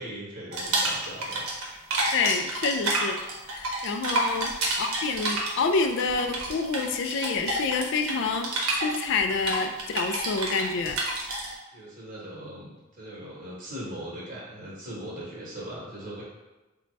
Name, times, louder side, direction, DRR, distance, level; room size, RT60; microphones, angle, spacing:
voice 1, 0.0-1.5 4.3-4.4 11.7-16.2, equal, 40° right, -5 dB, 1.1 m, -39 dB
sound 1, 0.5-1.7 1.9-11.5, right 2 dB, 75° right, 0.8 m, -29 dB
voice 2, 2.1-3.2 3.5-8.5 8.8-11.0, left 4 dB, 55° left, 5 dB, 0.3 m, -27 dB
4.0 x 2.2 x 3.2 m, 1.1 s
head